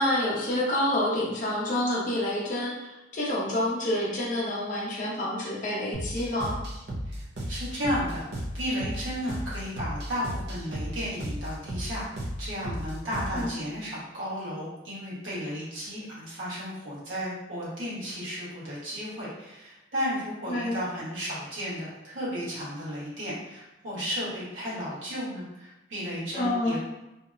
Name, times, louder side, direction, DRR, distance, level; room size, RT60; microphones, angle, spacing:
voice 1, 0.0-6.6 13.3-13.5 20.5-20.8 26.3-26.8, left 1 dB, 40° left, -5 dB, 0.6 m, -28 dB
sound 1, 5.9-13.5, equal, 50° right, 0.4 m, -35 dB
voice 2, 7.0-8.3 8.5-12.1 12.4-26.8, equal, 70° right, -9 dB, 1.1 m, -34 dB
2.7 x 2.0 x 2.4 m, 0.97 s
head